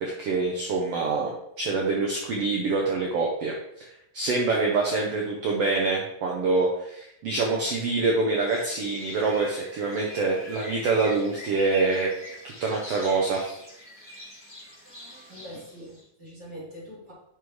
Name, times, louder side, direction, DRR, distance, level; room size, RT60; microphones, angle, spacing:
voice 1, 0.0-3.5 4.1-12.1 12.6-13.5, right 3 dB, 75° right, -1 dB, 1.4 m, -25 dB
sound 1, 8.5-16.0, left 1 dB, 5° right, 0.9 m, -43 dB
voice 2, 15.3-17.1, equal, 25° right, -8 dB, 3.2 m, -43 dB
7.9 x 5.4 x 3.2 m, 0.77 s
omnidirectional pair, 3.8 m